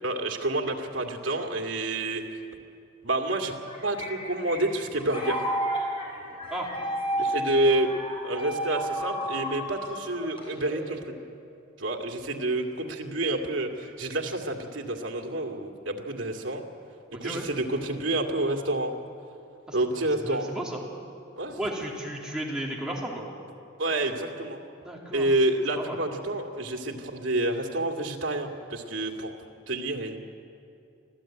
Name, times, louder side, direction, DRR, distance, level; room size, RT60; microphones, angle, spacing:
voice 1, 0.0-2.2 3.0-3.5 3.8-5.4 7.2-7.9 8.2-11.0 11.8-16.6 17.2-18.9 19.7-20.5 21.4-21.6 23.8-24.6 25.1-29.3 29.7-30.2, right 2 dB, 85° right, 3 dB, 2.4 m, -28 dB
sound 1, 3.4-11.0, right 1 dB, 30° left, 5.7 m, -32 dB
voice 2, 17.1-17.4 19.7-19.8 20.2-20.8 21.6-23.2 24.8-25.3 25.7-26.0, right 1 dB, 5° right, -3 dB, 3.3 m, -34 dB
25.0 x 15.5 x 8.9 m, 2.6 s
head